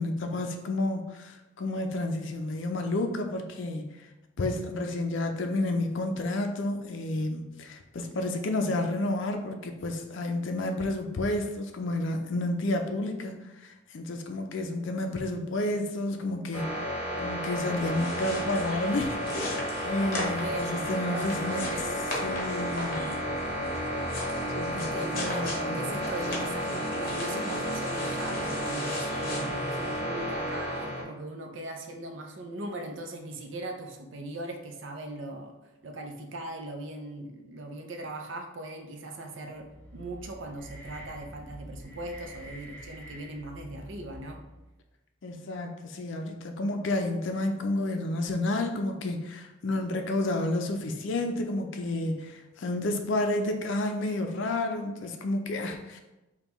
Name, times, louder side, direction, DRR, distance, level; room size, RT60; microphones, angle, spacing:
voice 1, 0.0-4.1 4.4-16.8 17.2-21.8 22.2-23.1 24.5-26.0 45.2-56.0, left 2 dB, 65° left, 5 dB, 0.4 m, -31 dB
voice 2, 8.0-8.4 20.0-22.1 24.7-44.4, right 2 dB, 65° right, 3 dB, 0.5 m, -39 dB
sound 1, 16.5-31.0, equal, 30° left, 1.1 m, -32 dB
sound 2, 17.6-30.0, left 1 dB, 45° left, 0.9 m, -39 dB
sound 3, 39.4-44.7, equal, 10° left, 0.5 m, -47 dB
5.3 x 2.3 x 3.0 m, 1.0 s
head